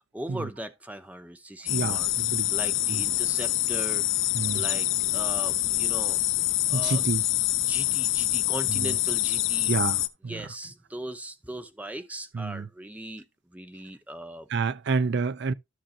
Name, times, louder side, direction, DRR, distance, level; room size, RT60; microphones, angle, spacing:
voice 1, 0.1-2.1 2.5-4.0 4.5-4.9 5.1-7.1 7.7-9.7 10.3-13.2 13.5-14.5, right 1 dB, 5° right, 0.7 m, -38 dB
sound 1, 1.7-10.1, left 16 dB, 60° left, 0.5 m, -26 dB
voice 2, 1.7-2.5 2.9-3.0 4.3-4.6 5.1-5.2 6.7-7.3 8.7-8.9 9.7-10.5 12.3-12.7 14.5-15.5, right 4 dB, 55° right, 0.4 m, -29 dB
13.0 x 6.2 x 2.8 m
head